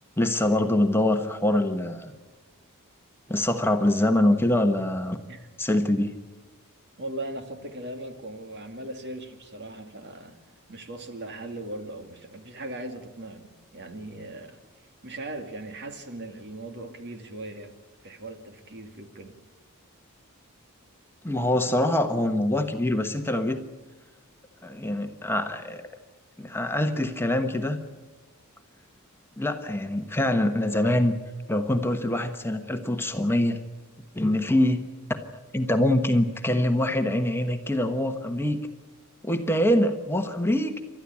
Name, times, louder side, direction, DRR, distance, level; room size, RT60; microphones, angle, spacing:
voice 1, 0.2-2.1 3.3-5.2 5.6-6.1 21.2-23.6 24.6-25.9 26.4-27.8 29.4-31.2 31.5-33.6 34.1-34.8 35.5-38.7 39.2-40.7, left 1 dB, 10° left, 6 dB, 1.2 m, -24 dB
voice 2, 7.0-10.4 10.7-14.6 15.0-17.7 18.0-19.3, right 1 dB, 50° right, 6 dB, 2.4 m, -39 dB
29.5 x 13.0 x 8.6 m, 1.3 s
head